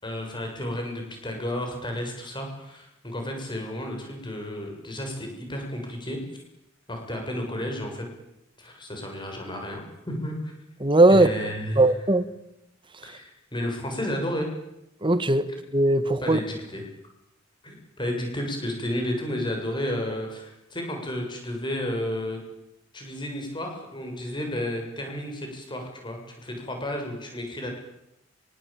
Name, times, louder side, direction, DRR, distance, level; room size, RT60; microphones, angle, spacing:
voice 1, 0.0-6.2 6.9-8.1 8.6-10.5 11.1-11.8 13.0-14.5 16.2-16.8 17.6-22.4 22.9-27.7, left 1 dB, 25° left, 3 dB, 7.2 m, -32 dB
voice 2, 10.8-11.3 11.8-12.3 15.0-16.4, right 2 dB, 25° right, 12 dB, 1.7 m, -19 dB
24.0 x 24.0 x 9.0 m, 0.83 s
head